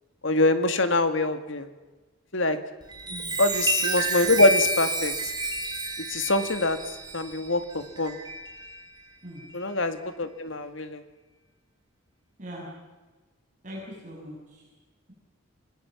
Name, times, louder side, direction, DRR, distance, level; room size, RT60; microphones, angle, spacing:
voice 1, 0.2-1.7 2.3-2.6 3.4-5.1 6.1-6.8 7.1-8.1 9.5-11.0, left 2 dB, 65° left, 9 dB, 2.0 m, -24 dB
Chime, 2.8-8.8 9.4-9.6, right 2 dB, 20° right, 4.1 m, -30 dB
voice 2, 3.1-3.4 9.2-9.5 12.4-12.7 13.6-14.7, equal, 35° right, -4 dB, 6.6 m, -41 dB
27.5 x 20.5 x 7.3 m, 1.2 s
head